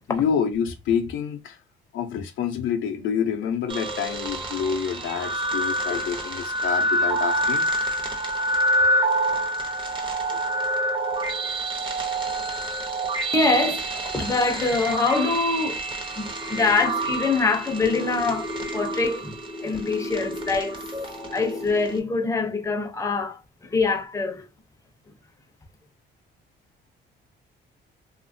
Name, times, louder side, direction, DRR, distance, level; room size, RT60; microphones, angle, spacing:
voice 1, 0.1-1.6 1.9-7.7 8.4-8.5 10.3-10.4, left 7 dB, 80° left, 0.6 m, -27 dB
sound 1, 3.7-22.0, right 1 dB, 25° right, 0.9 m, -27 dB
voice 2, 13.3-15.8 16.1-20.8 21.3-24.5, left 3 dB, 15° left, 0.6 m, -24 dB
2.8 x 2.4 x 2.6 m
cardioid pair, 90°, 20 cm